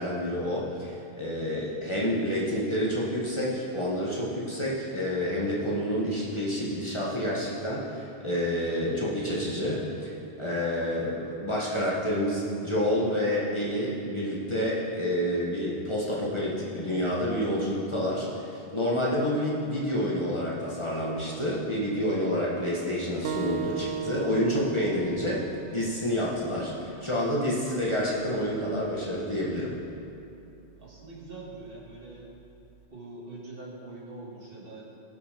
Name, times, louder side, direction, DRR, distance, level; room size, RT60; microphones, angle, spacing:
voice 1, 0.0-10.1 10.4-29.7, equal, 25° left, -6 dB, 1.5 m, -28 dB
sound 1, 23.2-28.4, right 7 dB, 75° right, 0.9 m, -38 dB
voice 2, 30.8-32.3 32.9-34.8, right 2 dB, 55° right, -5 dB, 2.3 m, -43 dB
16.0 x 6.2 x 5.2 m, 2.7 s
omnidirectional pair, 1.2 m